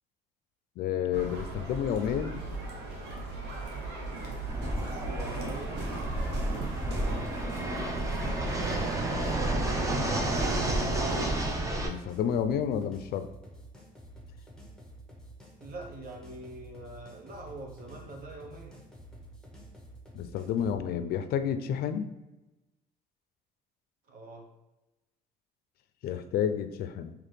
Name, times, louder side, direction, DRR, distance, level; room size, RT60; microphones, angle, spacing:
voice 1, 0.8-2.4 11.7-13.3 20.1-22.1 26.0-27.1, left 8 dB, 65° left, 10 dB, 0.4 m, -30 dB
sound 1, 1.1-11.5, right 2 dB, 85° right, 0.9 m, -37 dB
Fixed-wing aircraft airplane, 4.5-11.9, right 1 dB, 20° right, 0.6 m, -31 dB
voice 2, 5.0-6.0 6.9-7.3 15.6-18.8 24.1-24.4, right 2 dB, 55° right, 1 dB, 1.0 m, -44 dB
sound 2, 7.5-20.8, right 1 dB, 5° left, 1.0 m, -50 dB
4.0 x 2.9 x 3.2 m, 1.0 s
cardioid pair, 110°, 17 cm